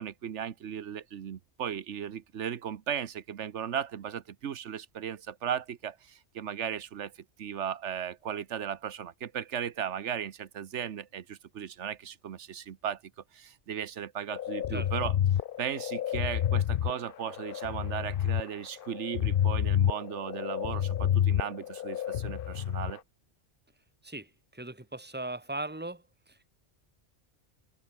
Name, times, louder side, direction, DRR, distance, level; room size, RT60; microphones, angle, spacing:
voice 1, 0.0-13.0 13.3-15.1 15.6-23.0, right 8 dB, 90° right, 1.3 m, -36 dB
sound 1, 14.3-22.9, left 10 dB, 60° left, 0.7 m, -29 dB
voice 2, 24.0-26.5, right 2 dB, 10° right, 2.6 m, -39 dB
omnidirectional pair, 1.2 m